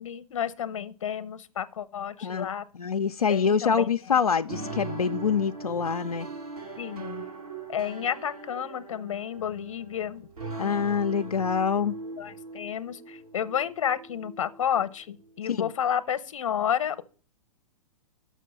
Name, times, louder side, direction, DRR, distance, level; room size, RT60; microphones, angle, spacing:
voice 1, 0.0-2.7 3.3-3.9 6.8-7.3 7.7-10.3 12.2-17.0, left 9 dB, 60° left, 0.8 m, -31 dB
voice 2, 2.8-6.3 10.6-12.0 15.5-15.7, left 6 dB, 85° left, 0.4 m, -25 dB
sound 1, 4.5-15.9, right 3 dB, 85° right, 2.9 m, -40 dB
6.5 x 6.3 x 6.6 m
figure-of-eight pair, 110°, 19 cm